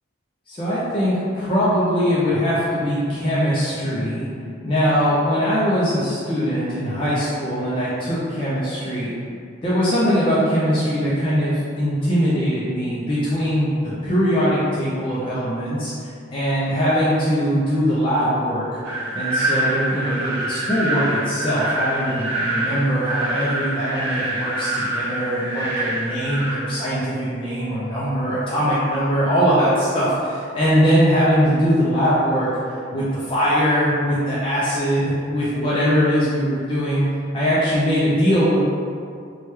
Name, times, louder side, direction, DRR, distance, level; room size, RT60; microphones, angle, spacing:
voice 1, 0.5-4.3 4.6-9.1 9.6-18.8 19.1-32.5 32.9-37.0 37.3-38.6, equal, 25° left, -9 dB, 0.4 m, -21 dB
sound 1, 18.8-26.5, right 1 dB, 55° right, 0.7 m, -25 dB
3.1 x 2.2 x 3.0 m, 2.4 s
head